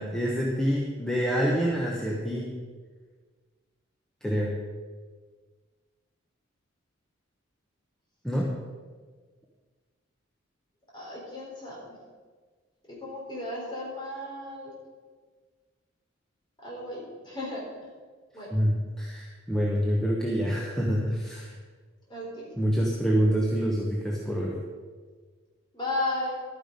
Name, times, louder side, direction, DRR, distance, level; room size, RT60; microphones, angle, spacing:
voice 1, 0.0-2.5 4.2-4.5 8.2-8.5 18.5-21.5 22.6-24.6, equal, 5° left, -3 dB, 1.1 m, -26 dB
voice 2, 10.9-12.0 12.9-14.7 16.6-17.6 18.3-18.5 22.1-22.5 25.7-26.3, left 1 dB, 20° left, -4 dB, 3.9 m, -34 dB
12.0 x 9.5 x 5.2 m, 1.5 s
head